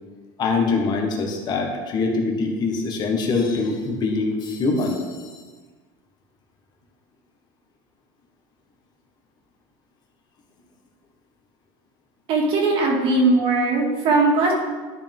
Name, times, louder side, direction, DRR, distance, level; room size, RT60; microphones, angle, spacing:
voice 1, 0.4-5.0, left 3 dB, 40° left, 2 dB, 1.5 m, -23 dB
voice 2, 12.3-14.5, right 3 dB, 55° right, -1 dB, 2.1 m, -19 dB
12.0 x 5.3 x 3.6 m, 1.4 s
cardioid pair, 135°, 11 cm